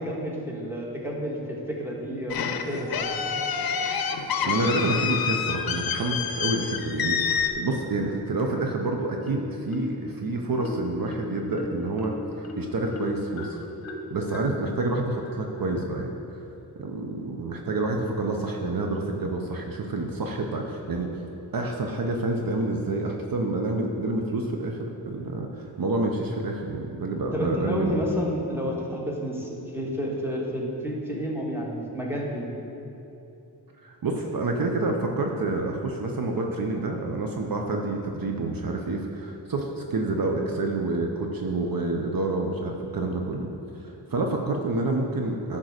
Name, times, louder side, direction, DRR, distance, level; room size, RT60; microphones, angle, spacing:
voice 1, 0.0-3.5 27.3-32.5, equal, 5° right, -3 dB, 1.6 m, -30 dB
sound 1, 2.3-7.5, left 7 dB, 60° left, 0.6 m, -28 dB
voice 2, 4.5-13.6 14.1-16.1 16.8-21.1 21.5-28.0 33.8-43.5 43.8-45.6, right 2 dB, 55° right, 2 dB, 0.8 m, -28 dB
Marimba xylophone, 9.2-10.1 10.6-16.1, left 4 dB, 40° left, 1.1 m, -38 dB
10.5 x 3.8 x 6.5 m, 2.9 s
wide cardioid pair, 70°, 40 cm